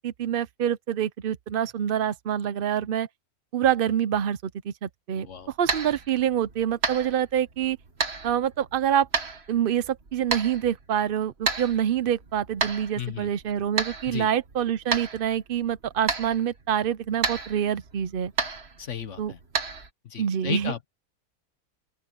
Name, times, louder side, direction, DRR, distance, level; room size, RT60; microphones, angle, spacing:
voice 1, 0.0-3.1 3.5-7.8 8.2-9.1 9.5-18.3 19.2-19.3 20.2-20.7, right 9 dB, 60° right, 0.5 m, -26 dB
voice 2, 5.1-5.5 13.0-13.3 14.1-14.3 18.8-19.4 20.0-20.9, left 7 dB, 55° left, 1.4 m, -34 dB
sound 1, 5.3-19.9, right 4 dB, 45° right, 1.9 m, -33 dB
open air
omnidirectional pair, 1.6 m